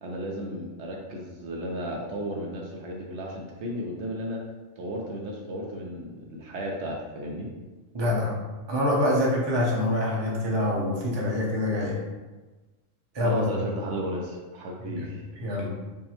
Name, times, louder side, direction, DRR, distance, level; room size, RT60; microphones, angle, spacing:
voice 1, 0.0-4.4 4.8-7.5 13.2-15.2, equal, 70° right, -1 dB, 0.8 m, -34 dB
voice 2, 7.9-8.3 8.7-12.0 13.1-13.4 14.8-15.0 15.4-15.7, left 1 dB, 25° right, -3 dB, 0.7 m, -25 dB
5.5 x 2.1 x 2.9 m, 1.2 s
omnidirectional pair, 1.3 m